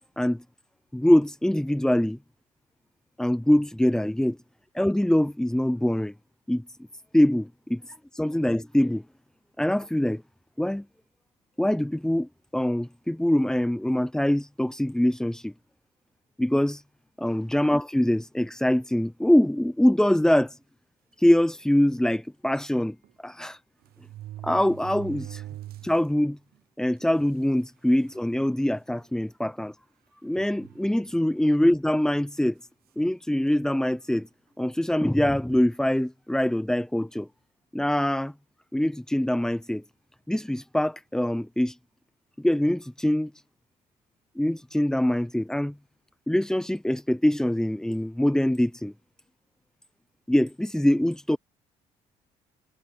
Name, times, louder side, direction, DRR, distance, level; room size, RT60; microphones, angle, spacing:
voice 1, 0.9-2.2 3.2-4.4 4.7-6.1 6.5-6.6 7.1-9.0 9.6-10.2 10.6-10.8 11.6-15.5 16.4-16.8 17.2-20.6 21.2-23.0 23.2-23.6 24.4-25.4 25.8-26.4 26.8-29.8 30.2-32.6 33.0-34.3 34.6-37.3 37.7-38.3 38.7-39.8 40.3-41.8 42.4-43.3 44.4-45.7 46.3-48.9 50.3-51.4, left 1 dB, 5° left, 0.7 m, -24 dB
sound 1, 20.2-20.5 21.2-21.3 21.6-21.7 23.0-23.1 23.8-26.1 26.5-26.6 27.4-27.5 27.9-28.3 28.9-29.1 30.3-31.2 32.1-32.4, right 14 dB, 70° right, 0.8 m, -42 dB
supercardioid pair, 60°, 16 cm